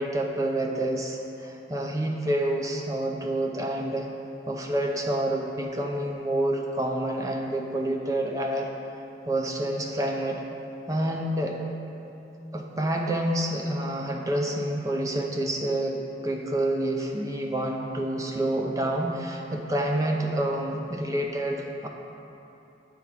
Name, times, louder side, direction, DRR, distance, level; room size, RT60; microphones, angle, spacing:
voice 1, 0.0-4.1 4.5-8.7 9.3-10.4 10.9-11.6 12.5-16.0 16.2-21.9, right 1 dB, 20° right, 1 dB, 0.5 m, -28 dB
9.4 x 3.5 x 5.9 m, 2.9 s
head